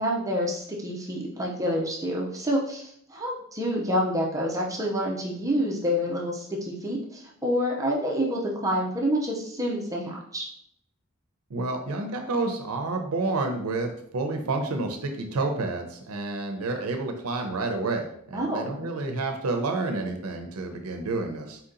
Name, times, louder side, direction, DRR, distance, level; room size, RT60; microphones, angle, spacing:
voice 1, 0.0-10.5 18.3-18.7, equal, 15° right, -2 dB, 0.6 m, -28 dB
voice 2, 11.5-21.6, right 3 dB, 75° right, 4 dB, 0.6 m, -29 dB
4.4 x 2.8 x 3.8 m, 0.68 s
head